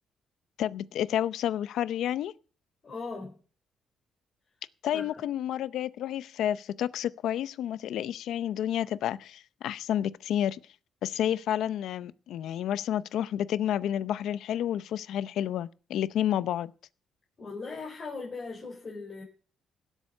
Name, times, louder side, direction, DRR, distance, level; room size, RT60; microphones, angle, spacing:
voice 1, 0.6-2.3 4.8-10.6 11.0-16.7, left 11 dB, 80° left, 0.6 m, -30 dB
voice 2, 2.8-3.3 4.9-5.2 17.4-19.2, left 4 dB, 40° left, 4.7 m, -39 dB
17.0 x 8.3 x 5.5 m
cardioid pair, 90°, 0 cm